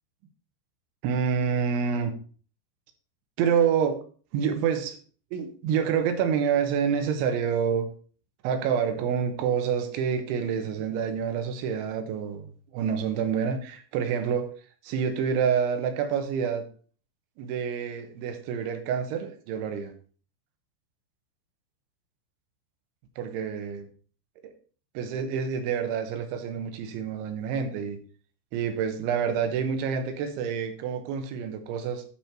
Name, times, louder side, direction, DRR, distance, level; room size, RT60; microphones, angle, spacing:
voice 1, 1.0-2.1 3.4-4.0 4.3-5.0 5.3-7.9 8.4-14.5 14.8-16.6 17.4-19.9 23.2-23.9 24.4-24.5 24.9-28.0 28.5-32.0, right 7 dB, 80° right, 7 dB, 3.4 m, -27 dB
11.0 x 5.1 x 4.5 m, 0.41 s
omnidirectional pair, 5.5 m